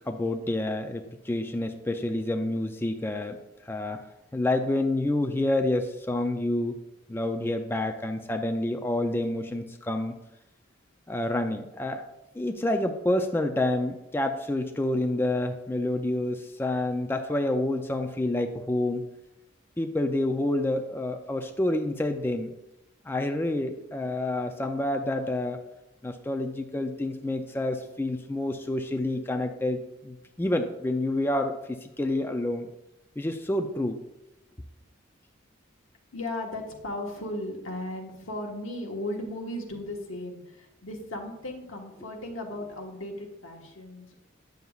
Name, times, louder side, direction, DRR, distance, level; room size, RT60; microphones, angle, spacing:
voice 1, 0.1-3.4 3.6-4.0 4.3-6.8 7.1-10.2 11.1-12.1 12.3-19.0 19.8-22.5 23.1-25.6 26.0-32.7 33.2-34.0, left 1 dB, 10° left, 5 dB, 0.4 m, -28 dB
voice 2, 36.1-44.2, left 1 dB, 90° left, 1 dB, 1.3 m, -36 dB
9.2 x 6.8 x 2.4 m, 0.91 s
head